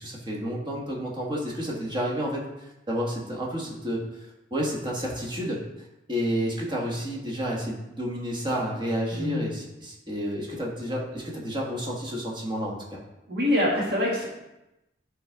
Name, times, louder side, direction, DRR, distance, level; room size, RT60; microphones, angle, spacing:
voice 1, 0.0-4.0 4.5-13.0, equal, 25° right, -2 dB, 1.3 m, -30 dB
voice 2, 13.3-14.3, left 1 dB, 60° right, -4 dB, 1.9 m, -24 dB
10.5 x 3.7 x 3.4 m, 0.95 s
head